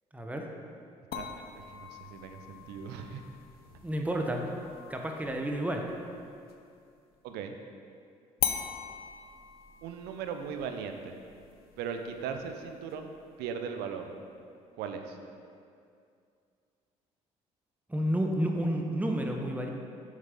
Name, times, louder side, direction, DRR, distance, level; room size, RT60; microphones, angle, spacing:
voice 1, 0.1-0.5 3.8-4.5 4.9-5.9 17.9-19.7, right 1 dB, 10° right, 2 dB, 0.9 m, -30 dB
sound 1, 1.1-6.7 8.4-13.4, left 9 dB, 60° left, 0.6 m, -41 dB
voice 2, 1.1-3.2 7.2-7.5 9.8-11.1 11.8-13.1 13.4-14.1 14.8-15.1, right 6 dB, 65° right, 6 dB, 0.7 m, -38 dB
7.5 x 6.4 x 3.7 m, 2.4 s
hypercardioid pair, 50°, 18 cm